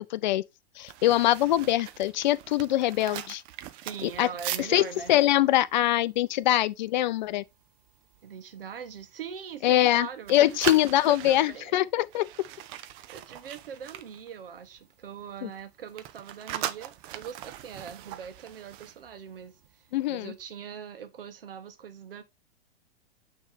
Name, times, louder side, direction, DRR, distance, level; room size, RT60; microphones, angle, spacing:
voice 1, 0.1-0.4 0.8-3.4 4.0-4.3 4.6-7.4 9.6-12.3 15.4-15.5 19.9-20.3, left 14 dB, 50° left, 0.5 m, -23 dB
sound 1, 0.8-6.9 7.3-7.5 7.9-8.2 8.7-9.9 10.2-14.9 15.2-19.7 20.0-20.2, right 13 dB, 15° right, 0.3 m, -40 dB
voice 2, 3.7-5.1 8.2-10.6 11.1-11.8 12.7-22.2, right 7 dB, 60° right, 1.3 m, -42 dB
8.8 x 3.3 x 3.5 m
figure-of-eight pair, 100°, 31 cm